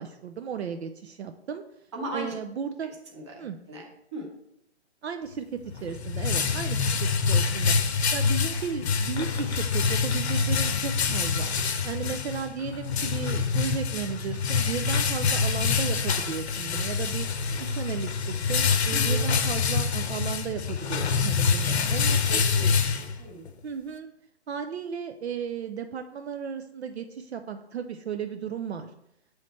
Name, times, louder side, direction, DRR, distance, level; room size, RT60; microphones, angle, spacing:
voice 1, 0.0-1.6 2.1-2.9 3.4-3.6 5.0-11.5 11.8-17.3 17.6-22.4 23.6-24.1 24.5-28.9, right 7 dB, 65° right, 7 dB, 0.5 m, -35 dB
voice 2, 1.9-2.3 3.1-3.8 4.1-4.3 18.9-19.2 22.3-23.5, right 1 dB, 25° right, 0 dB, 0.9 m, -37 dB
sound 1, 5.6-23.5, left 5 dB, 65° left, 0.7 m, -26 dB
7.5 x 3.2 x 4.1 m, 0.78 s
hypercardioid pair, 170°, 35 cm